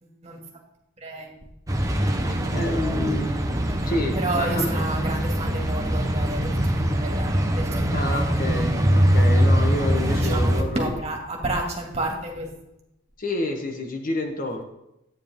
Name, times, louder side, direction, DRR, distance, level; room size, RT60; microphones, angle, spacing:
voice 1, 0.0-0.4 1.0-1.4 3.8-8.4 10.0-12.5, right 2 dB, 35° right, 0 dB, 2.2 m, -31 dB
sound 1, 1.7-10.6, equal, 15° right, 1.0 m, -22 dB
voice 2, 2.3-3.5 3.8-4.9 7.9-10.9 13.2-14.6, left 1 dB, 45° left, 4 dB, 1.2 m, -29 dB
11.5 x 9.2 x 3.7 m, 0.86 s
head